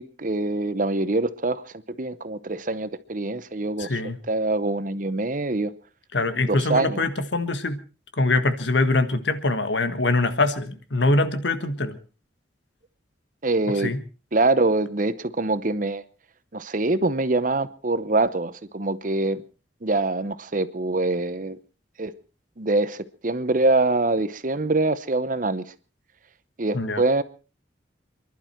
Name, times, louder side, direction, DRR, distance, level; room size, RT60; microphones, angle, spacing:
voice 1, 0.0-1.6 2.0-4.0 4.3-5.7 6.5-7.1 13.4-13.9 14.3-16.0 16.5-19.4 19.8-21.6 22.0-22.1 22.6-25.6 26.6-27.2, right 2 dB, 45° right, 0.9 m, -24 dB
voice 2, 3.8-4.2 6.1-7.8 8.2-12.0 13.8-14.0 26.7-27.0, left 2 dB, 75° left, 1.6 m, -23 dB
28.0 x 11.5 x 4.4 m
head